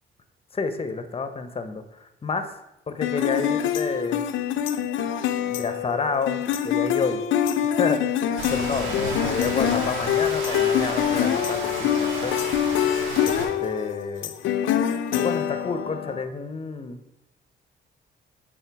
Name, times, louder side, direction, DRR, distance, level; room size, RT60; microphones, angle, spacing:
voice 1, 0.5-2.6 2.9-4.2 5.5-7.2 7.6-8.2 8.5-12.3 13.2-14.3 15.1-17.0, left 4 dB, 30° left, 9 dB, 0.7 m, -30 dB
sound 1, 3.0-16.2, left 9 dB, 75° left, 0.5 m, -25 dB
Rain, 8.4-13.5, right 2 dB, 85° right, 1.5 m, -33 dB
8.2 x 3.7 x 4.7 m, 0.89 s
cardioid pair, 90°, 20 cm